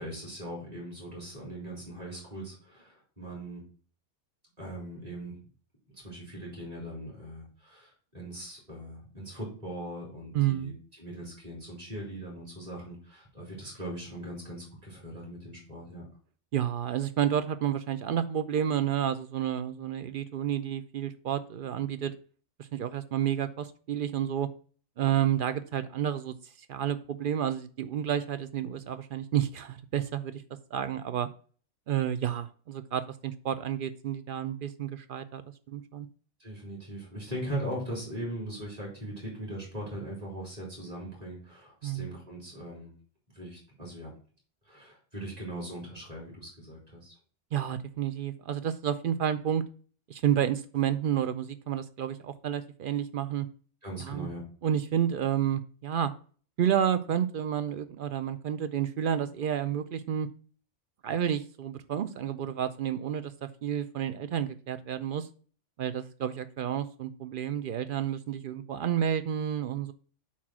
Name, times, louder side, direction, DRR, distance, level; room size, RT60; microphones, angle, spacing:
voice 1, 0.0-3.6 4.6-5.4 5.9-16.1 36.4-42.9 43.3-44.1 44.6-47.1 53.8-54.4, right 1 dB, 30° right, -4 dB, 3.7 m, -40 dB
voice 2, 10.3-10.7 16.5-22.1 22.6-24.5 25.0-26.3 26.7-30.4 30.7-31.3 31.9-35.4 35.7-36.1 41.8-42.1 47.5-49.6 50.1-53.5 54.0-54.3 54.6-56.1 56.6-60.3 61.0-65.3 65.8-69.9, right 10 dB, 60° right, 12 dB, 0.6 m, -30 dB
8.4 x 3.0 x 6.0 m, 0.42 s
omnidirectional pair, 1.2 m